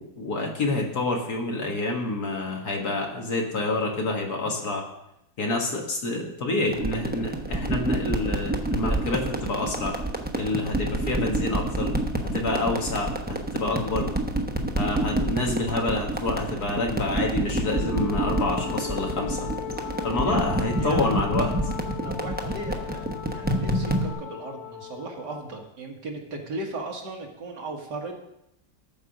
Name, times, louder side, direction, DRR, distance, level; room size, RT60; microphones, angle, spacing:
voice 1, 0.0-4.8 5.4-9.9 10.3-11.9 12.3-14.1 14.8-19.5 20.0-21.5, left 2 dB, 60° left, 1 dB, 2.1 m, -28 dB
sound 1, 6.7-24.1, right 1 dB, 10° right, 0.4 m, -28 dB
Wind instrument woodwind instrument, 17.7-25.7, left 11 dB, 75° left, 0.6 m, -38 dB
voice 2, 22.0-28.2, right 2 dB, 70° right, 1 dB, 2.1 m, -36 dB
12.5 x 4.8 x 6.5 m, 0.83 s
omnidirectional pair, 1.9 m